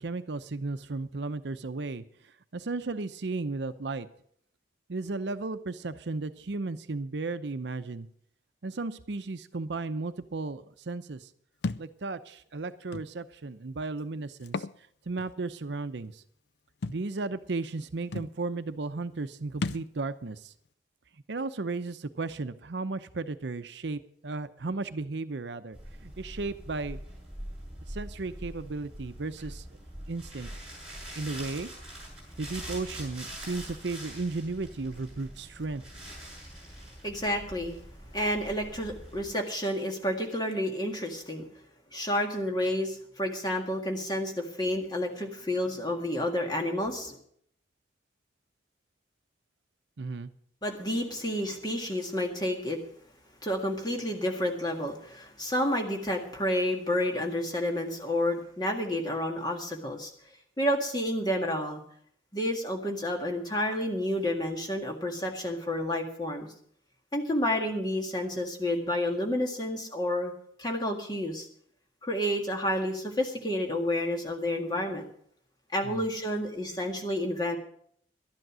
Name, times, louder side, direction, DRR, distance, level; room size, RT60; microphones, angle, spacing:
voice 1, 0.0-2.0 2.5-4.1 4.9-8.1 8.6-11.3 11.8-14.7 15.1-16.2 16.9-20.5 21.3-27.0 27.9-29.6 30.1-30.5 31.2-31.7 32.4-35.8 50.0-50.3 75.8-76.1, right 3 dB, 70° right, 11 dB, 0.7 m, -35 dB
Thump thud, 11.6-11.9 12.9-13.1 14.4-14.8 15.2-15.3 16.8-17.0 17.8-17.9 18.1-18.3 19.6-19.9, left 3 dB, 65° left, 0.4 m, -33 dB
sound 1, 25.7-39.3, right 1 dB, 5° right, 7.8 m, -44 dB
voice 2, 37.0-37.8 38.1-41.4 41.9-47.2 50.6-52.8 53.4-60.1 60.6-61.8 62.3-66.5 67.1-70.3 70.6-71.5 72.0-75.0 75.7-77.6, left 1 dB, 20° left, 2 dB, 1.9 m, -30 dB
12.0 x 10.5 x 6.2 m, 0.64 s
head